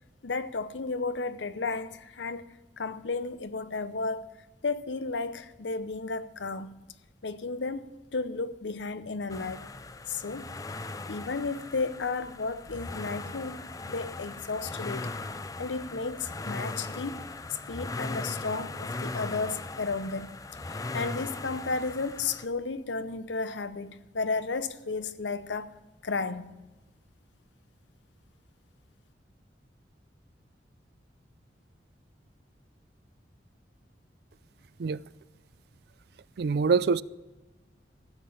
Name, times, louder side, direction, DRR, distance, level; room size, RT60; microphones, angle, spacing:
voice 1, 0.2-4.3 4.6-6.7 7.2-9.7 10.1-10.5 11.1-15.1 15.6-17.3 17.7-20.4 20.7-25.8 26.0-26.6, left 4 dB, 85° left, 0.7 m, -33 dB
sound 1, 9.3-22.5, left 3 dB, 20° left, 0.5 m, -38 dB
voice 2, 36.4-37.0, right 5 dB, 60° right, 0.4 m, -24 dB
15.0 x 7.7 x 8.5 m
head